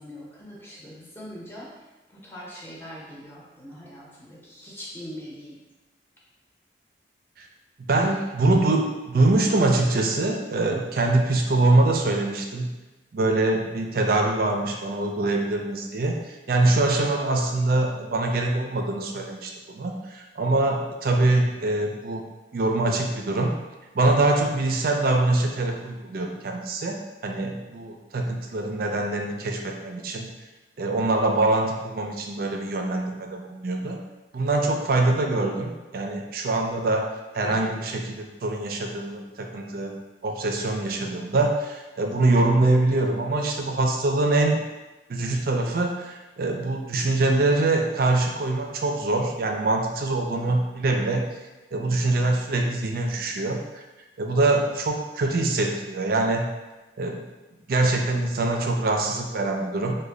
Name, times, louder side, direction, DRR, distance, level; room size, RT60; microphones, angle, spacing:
voice 1, 0.0-1.7 2.1-5.6 37.4-37.8, equal, 10° left, -6 dB, 0.7 m, -42 dB
voice 2, 7.9-12.7 13.1-22.2 22.5-23.5 23.9-27.0 27.2-30.3 30.8-34.0 34.3-39.9 40.2-44.6 45.1-51.2 51.7-53.8 54.2-56.4 57.0-57.2 57.7-60.0, right 2 dB, 50° right, 2 dB, 0.4 m, -24 dB
3.1 x 2.2 x 3.7 m, 1.1 s
head